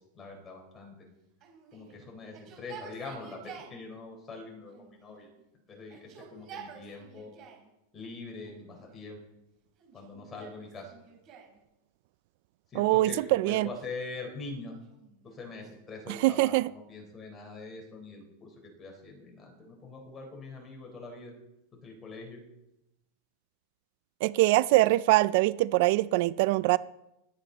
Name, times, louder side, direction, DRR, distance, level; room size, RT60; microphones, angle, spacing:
voice 1, 0.1-0.9 1.7-5.3 5.7-7.3 7.9-9.2 9.9-10.9 12.7-14.7 15.2-21.3 21.7-22.4, left 3 dB, 20° left, 3.9 m, -43 dB
Yell, 1.4-3.8 4.7-5.4 5.8-7.7 8.4-9.1 9.8-11.6 13.0-13.8 14.7-16.4, right 6 dB, 40° right, 3.9 m, -51 dB
voice 2, 12.7-13.7 16.1-16.7 24.2-26.8, right 18 dB, 60° right, 0.3 m, -23 dB
19.5 x 8.5 x 3.9 m
supercardioid pair, 130°, 0 cm